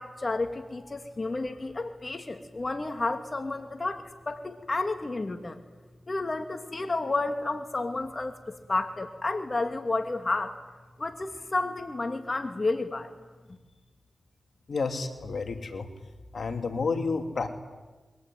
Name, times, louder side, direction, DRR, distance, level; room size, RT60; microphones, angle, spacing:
voice 1, 0.0-5.6 6.1-8.4 8.7-10.6 11.0-13.1, left 2 dB, 40° left, 7 dB, 2.6 m, -31 dB
voice 2, 14.7-15.9 16.3-17.5, left 4 dB, 70° left, 6 dB, 2.9 m, -30 dB
28.0 x 22.5 x 9.4 m, 1.2 s
cardioid pair, 45°, 0 cm